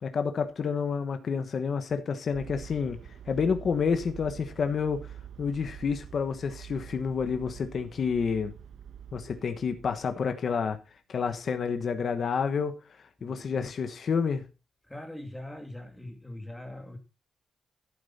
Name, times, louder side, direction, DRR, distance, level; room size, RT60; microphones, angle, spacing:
voice 1, 0.0-3.0 3.3-5.0 5.4-8.5 9.1-10.8 11.1-12.8 13.2-14.4, left 6 dB, 40° left, 1.1 m, -29 dB
sound 1, 2.3-10.6, right 9 dB, 60° right, 1.0 m, -46 dB
voice 2, 13.2-13.7 14.8-17.0, left 1 dB, 5° left, 2.2 m, -42 dB
11.5 x 8.8 x 4.2 m
wide cardioid pair, 180°, 0 cm